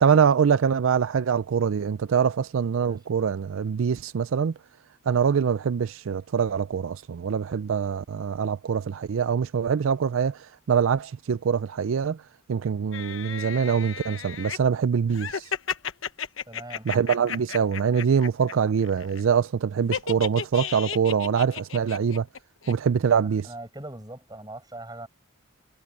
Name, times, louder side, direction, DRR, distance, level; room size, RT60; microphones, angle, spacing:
voice 1, 0.0-4.5 5.1-12.2 12.5-15.5 16.9-22.3 22.7-23.5, right 7 dB, 75° right, 0.4 m, -24 dB
sound 1, 12.9-14.6 15.1-18.5 18.8-19.2 19.9-22.4 22.6-22.7, left 7 dB, 70° left, 1.1 m, -33 dB
voice 2, 16.5-16.9 23.4-25.1, right 1 dB, 20° right, 6.3 m, -40 dB
head